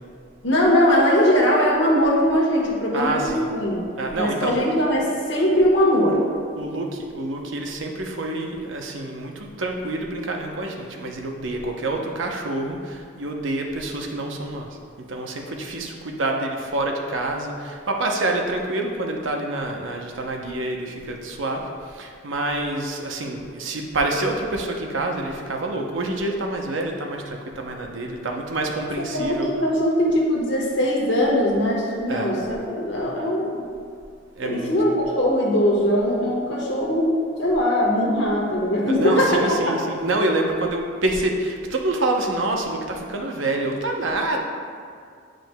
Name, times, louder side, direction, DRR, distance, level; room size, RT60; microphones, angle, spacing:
voice 1, 0.4-3.8 4.2-6.2 29.1-33.6 34.4-39.4, equal, 65° left, -3 dB, 1.2 m, -20 dB
voice 2, 2.9-3.5 4.0-4.6 6.6-14.8 15.1-29.5 32.1-32.3 34.4-34.7 38.9-44.4, right 2 dB, 75° right, 2 dB, 0.7 m, -27 dB
9.1 x 5.1 x 2.2 m, 2.2 s
head